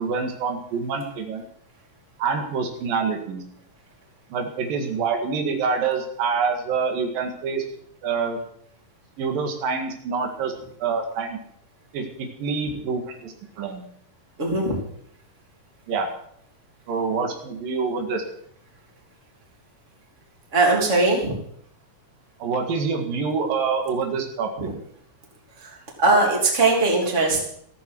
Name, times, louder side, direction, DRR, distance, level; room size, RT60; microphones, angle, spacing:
voice 1, 0.0-1.4 2.2-3.4 4.3-7.6 8.0-8.4 9.2-10.5 10.8-11.4 11.9-13.8 15.9-16.1 16.9-18.2 22.4-24.7, right 5 dB, 85° right, 4 dB, 3.7 m, -26 dB
voice 2, 14.4-14.8 20.5-21.3 24.6-24.7 25.6-27.4, right 3 dB, 20° right, 0 dB, 3.0 m, -20 dB
15.0 x 14.0 x 4.6 m, 0.69 s
omnidirectional pair, 3.9 m